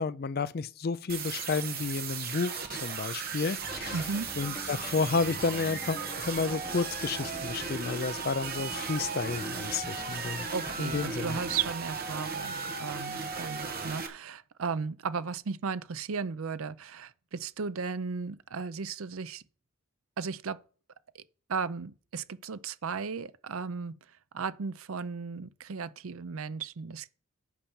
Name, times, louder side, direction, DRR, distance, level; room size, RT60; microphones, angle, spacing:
voice 1, 0.0-4.0 4.4-10.5 10.8-11.4, left 4 dB, 45° left, 0.4 m, -31 dB
sound 1, 1.1-14.1, right 5 dB, 45° right, 1.4 m, -36 dB
sound 2, 3.6-11.8, left 1 dB, 20° left, 1.3 m, -45 dB
voice 2, 3.9-4.3 10.2-19.4 20.2-20.6 21.1-21.2 21.5-27.1, right 5 dB, 75° right, 0.5 m, -35 dB
8.5 x 5.7 x 7.0 m
head